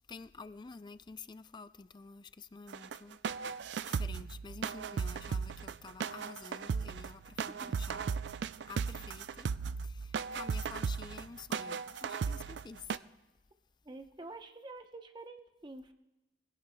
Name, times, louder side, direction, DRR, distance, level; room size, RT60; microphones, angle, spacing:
voice 1, 0.1-3.2 3.9-8.2 8.6-9.5 9.8-12.9, left 4 dB, 25° left, 0.4 m, -49 dB
sound 1, 2.7-13.0, right 6 dB, 75° right, 0.4 m, -37 dB
voice 2, 13.8-15.9, right 2 dB, 25° right, 0.8 m, -48 dB
24.0 x 17.5 x 2.2 m
head